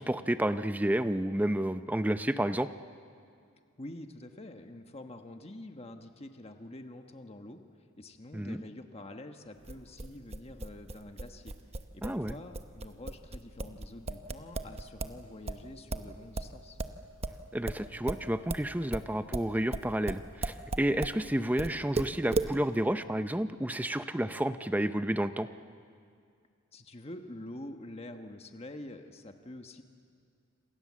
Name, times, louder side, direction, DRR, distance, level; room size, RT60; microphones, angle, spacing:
voice 1, 0.0-2.7 8.3-8.6 12.0-12.4 17.5-25.5, right 1 dB, 10° right, 10 dB, 0.6 m, -30 dB
voice 2, 3.8-7.6 8.0-11.5 11.9-16.8 26.7-29.8, left 1 dB, 30° left, 5 dB, 1.3 m, -46 dB
Tapping fingers on cheaks with open mouth, 9.6-15.2 15.5-21.2 21.6-22.5, right 2 dB, 30° right, 1.0 m, -36 dB
27.5 x 26.5 x 7.5 m, 2.3 s
head